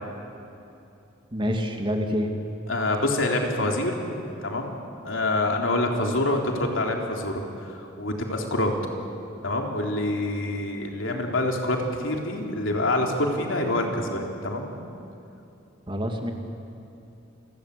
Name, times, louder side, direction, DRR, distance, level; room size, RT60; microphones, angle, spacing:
voice 1, 1.3-2.3 15.9-16.3, equal, 25° right, 3 dB, 2.4 m, -27 dB
voice 2, 2.7-4.2 4.4-8.7 9.4-14.7, left 1 dB, 70° left, 1 dB, 3.7 m, -26 dB
29.5 x 22.5 x 8.5 m, 2.8 s
head